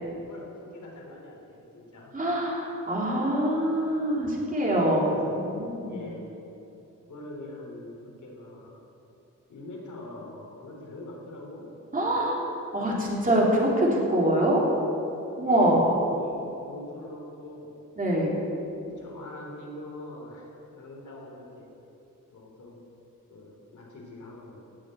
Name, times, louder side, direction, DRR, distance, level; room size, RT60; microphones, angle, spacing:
voice 1, 0.2-2.1 4.7-5.4 5.9-6.3 7.1-8.8 9.5-11.6 12.0-12.4 13.1-13.3 15.4-15.8 16.1-16.4 16.6-17.7 18.8-21.7 22.3-22.8 23.3-24.6, left 2 dB, 70° left, -2 dB, 3.7 m, -43 dB
voice 2, 2.1-6.0 11.9-12.4 12.7-14.6 15.4-16.0 18.0-18.3, right 1 dB, 25° right, -4 dB, 3.2 m, -24 dB
16.5 x 7.3 x 9.2 m, 2.9 s
wide cardioid pair, 150°, 31 cm